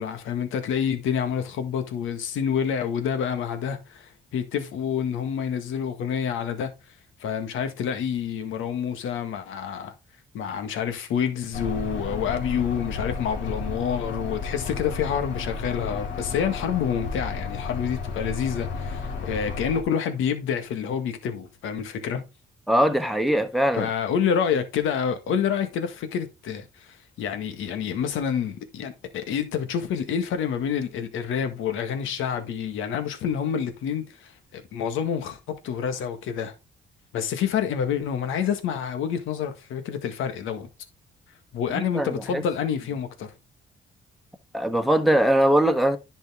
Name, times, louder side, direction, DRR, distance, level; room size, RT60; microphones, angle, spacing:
voice 1, 0.0-6.7 7.2-9.9 10.3-22.2 23.7-35.4 35.6-36.5 37.1-40.7 41.5-43.3, left 7 dB, 85° left, 1.7 m, -28 dB
sound 1, 11.5-19.8, left 4 dB, 65° left, 2.6 m, -32 dB
voice 2, 22.7-23.9 41.9-42.4 44.5-46.0, right 1 dB, ahead, 1.4 m, -21 dB
10.5 x 5.5 x 3.7 m
cardioid pair, 90°, 20 cm